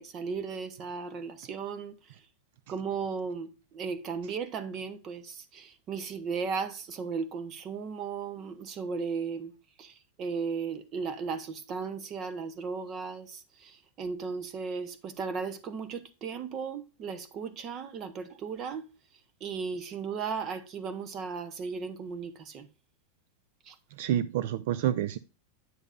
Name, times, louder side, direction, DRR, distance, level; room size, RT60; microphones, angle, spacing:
voice 1, 0.0-1.9 2.7-9.5 9.8-18.8 19.4-22.7 23.7-23.8, right 5 dB, 30° right, 1.0 m, -36 dB
voice 2, 23.9-25.2, right 11 dB, 60° right, 0.4 m, -28 dB
9.5 x 7.1 x 2.5 m
supercardioid pair, 150°, 0 cm